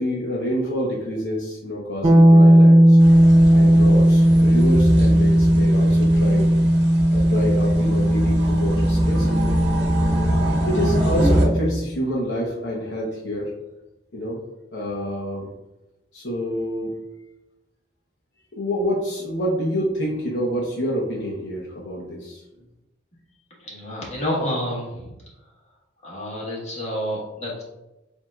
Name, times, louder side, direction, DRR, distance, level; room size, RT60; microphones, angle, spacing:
voice 1, 0.0-3.0 3.5-6.5 7.1-9.5 10.7-13.5 14.1-14.4 14.7-15.5 16.1-17.0 18.5-22.4, equal, 70° left, -4 dB, 1.0 m, -27 dB
sound 1, 2.0-11.8, equal, 25° right, 0.4 m, -16 dB
sound 2, 3.0-11.4, equal, 60° right, 0.9 m, -25 dB
voice 2, 23.6-25.1 26.0-27.6, equal, 35° left, -5 dB, 1.6 m, -29 dB
7.3 x 2.8 x 2.4 m, 0.97 s
head